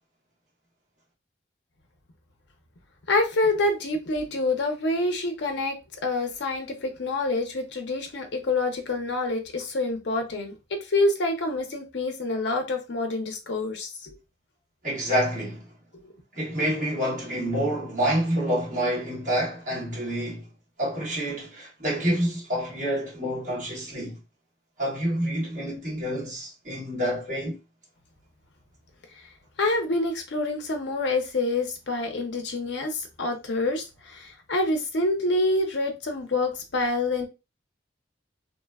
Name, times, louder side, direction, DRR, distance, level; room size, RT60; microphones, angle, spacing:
voice 1, 3.1-5.8 6.0-14.2 29.6-37.3, left 2 dB, 75° left, 0.6 m, -27 dB
voice 2, 14.8-15.7 16.3-20.5 20.8-24.2 24.8-27.6, equal, 40° right, 1.5 m, -28 dB
3.0 x 2.1 x 2.3 m
head